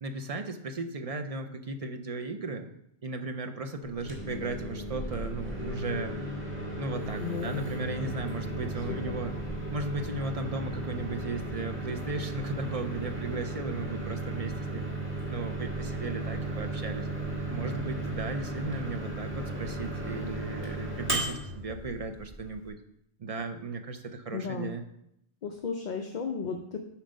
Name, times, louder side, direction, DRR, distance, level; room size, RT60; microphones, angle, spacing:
voice 1, 0.0-2.7 3.0-6.2 6.8-9.3 9.7-14.9 15.3-17.1 17.5-22.8 23.2-24.8, right 3 dB, 40° right, 6 dB, 0.5 m, -36 dB
Microwave oven, 3.9-22.7, right 2 dB, 10° right, 1.5 m, -35 dB
voice 2, 7.2-7.6 8.0-8.2 8.9-9.1 24.3-24.7 25.4-26.8, left 6 dB, 50° left, 4 dB, 0.6 m, -35 dB
7.4 x 4.5 x 5.2 m, 0.78 s
omnidirectional pair, 1.2 m